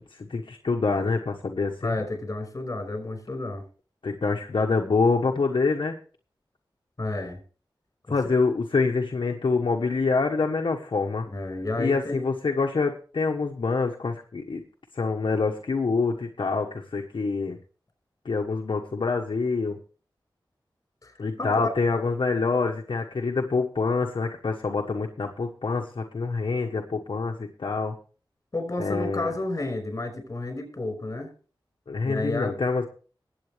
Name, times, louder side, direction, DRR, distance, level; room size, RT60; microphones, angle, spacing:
voice 1, 0.0-1.9 4.0-5.9 8.1-11.3 11.8-14.6 14.9-17.6 18.2-19.8 21.2-27.9 28.8-29.3 31.9-32.9, left 4 dB, 75° left, 2 dB, 1.3 m, -26 dB
voice 2, 1.8-3.6 7.0-7.4 8.1-8.3 11.3-12.2 21.0-21.5 28.5-31.3 32.0-32.6, left 2 dB, 40° left, 6 dB, 5.7 m, -31 dB
20.5 x 8.3 x 3.4 m, 0.38 s
wide cardioid pair, 70°, 8 cm